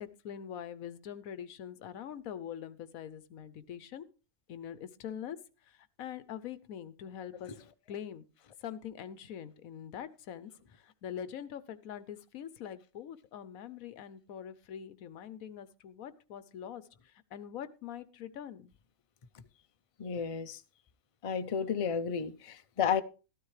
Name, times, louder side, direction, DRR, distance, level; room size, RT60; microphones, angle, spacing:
voice 1, 0.0-4.1 4.5-5.4 5.6-8.3 8.6-18.7, left 9 dB, 75° left, 1.2 m, -44 dB
voice 2, 20.0-20.6 21.2-23.0, left 7 dB, 50° left, 0.3 m, -32 dB
13.0 x 13.0 x 3.2 m
omnidirectional pair, 1.5 m